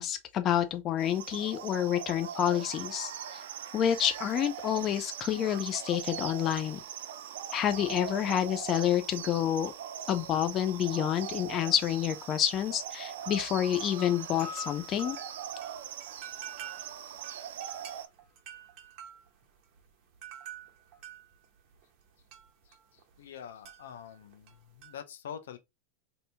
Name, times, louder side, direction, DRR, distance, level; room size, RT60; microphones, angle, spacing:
voice 1, 0.0-3.4 3.7-6.8 7.5-9.7 10.1-15.2, left 10 dB, 35° left, 0.4 m, -29 dB
sound 1, 1.0-18.1, right 9 dB, 75° right, 0.4 m, -41 dB
sound 2, 10.1-10.5 10.8-11.0 11.5-12.9 13.5-13.6 13.7-23.4 23.6-25.0, right 3 dB, 50° right, 0.9 m, -47 dB
voice 2, 23.2-25.6, left 8 dB, 85° left, 0.6 m, -45 dB
2.8 x 2.6 x 3.3 m
hypercardioid pair, 125°, 0 cm